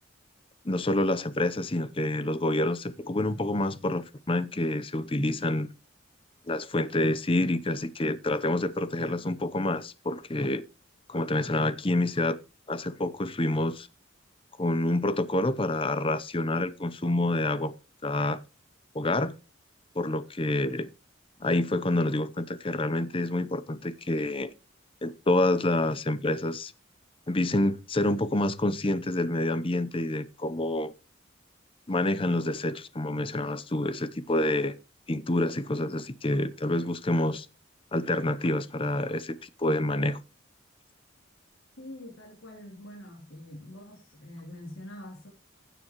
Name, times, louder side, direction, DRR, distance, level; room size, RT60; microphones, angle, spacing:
voice 1, 0.6-5.7 6.5-10.6 11.1-12.4 12.7-13.9 14.6-17.7 18.0-18.4 18.9-19.3 20.0-20.9 21.4-24.5 25.0-26.7 27.3-30.9 31.9-34.7 35.1-37.5 37.9-40.2, left 1 dB, 25° left, 0.7 m, -27 dB
voice 2, 41.8-45.3, left 1 dB, 80° left, 3.1 m, -44 dB
16.0 x 7.0 x 3.0 m
head